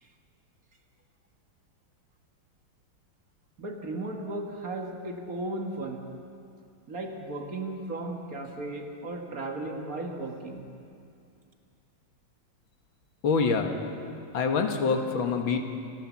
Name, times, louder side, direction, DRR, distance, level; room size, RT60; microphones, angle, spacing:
voice 1, 3.6-6.1 6.9-10.7, right 2 dB, 45° right, 2 dB, 2.0 m, -35 dB
voice 2, 13.2-13.7 14.3-15.6, left 5 dB, 80° left, 4 dB, 2.2 m, -25 dB
28.0 x 13.0 x 7.3 m, 2.5 s
omnidirectional pair, 2.2 m